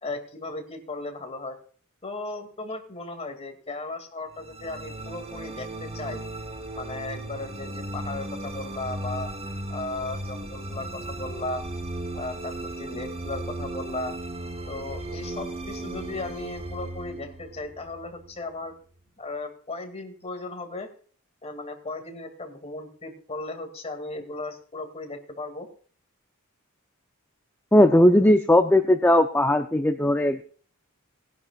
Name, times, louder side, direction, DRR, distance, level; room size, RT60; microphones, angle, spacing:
voice 1, 0.0-1.6 2.0-6.2 6.7-9.3 9.7-11.6 12.1-14.1 14.7-18.7 19.2-20.9 21.4-25.7, left 2 dB, 30° left, 5 dB, 2.3 m, -36 dB
sound 1, 4.3-18.7, right 1 dB, 30° right, 1.1 m, -36 dB
voice 2, 27.7-30.4, left 1 dB, 10° left, 5 dB, 0.6 m, -18 dB
19.5 x 11.0 x 2.4 m, 0.43 s
head